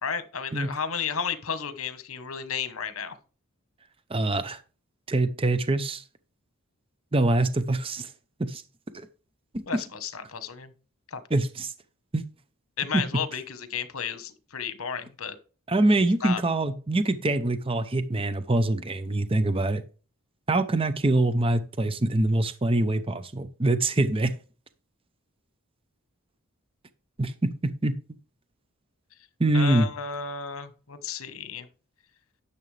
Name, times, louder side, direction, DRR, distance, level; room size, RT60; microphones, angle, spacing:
voice 1, 0.0-3.2 9.7-10.7 11.1-11.2 12.8-15.4 16.2-16.4 29.5-31.7, left 6 dB, 75° left, 1.2 m, -33 dB
voice 2, 4.1-4.6 5.1-6.0 7.1-8.1 8.4-8.6 8.9-9.1 9.5-9.8 11.3-11.7 12.1-12.2 12.9-13.0 15.7-19.8 20.5-24.3 27.2-28.0 29.4-29.9, right 2 dB, 25° right, 0.7 m, -24 dB
11.0 x 7.0 x 3.3 m
head